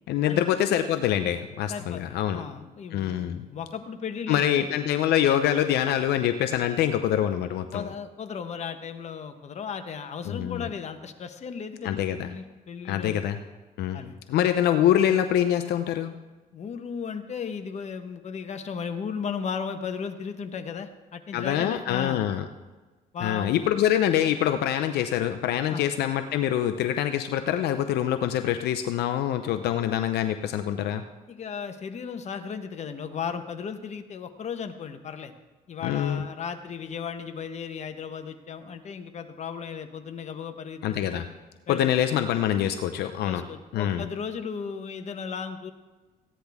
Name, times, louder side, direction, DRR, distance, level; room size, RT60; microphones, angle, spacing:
voice 1, 0.1-2.4 2.9-3.4 4.3-7.9 10.3-10.7 11.8-12.3 12.8-13.4 13.8-14.0 14.3-16.1 21.3-22.5 23.2-31.0 35.8-36.3 40.8-41.3 41.7-43.4 43.7-44.1, left 10 dB, 75° left, 8 dB, 0.6 m, -25 dB
voice 2, 1.7-2.0 2.3-4.7 7.7-13.2 13.9-14.2 16.5-22.2 23.1-23.6 25.7-25.9 31.3-35.3 35.7-41.1 41.7-41.9 43.2-45.7, left 6 dB, 40° left, 7 dB, 1.1 m, -35 dB
15.0 x 10.0 x 3.5 m, 1.2 s
cardioid pair, 110°, 17 cm